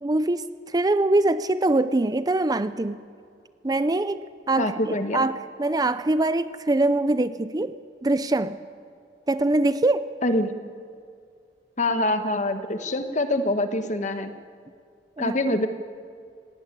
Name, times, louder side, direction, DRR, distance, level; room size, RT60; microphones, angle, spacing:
voice 1, 0.0-3.0 3.6-8.6 9.3-10.2 15.2-15.4, right 2 dB, 20° right, 14 dB, 0.5 m, -23 dB
voice 2, 4.6-5.3 10.2-10.5 11.8-14.3 15.2-15.7, left 1 dB, 45° left, 8 dB, 1.4 m, -25 dB
18.5 x 17.5 x 10.0 m, 2.3 s
head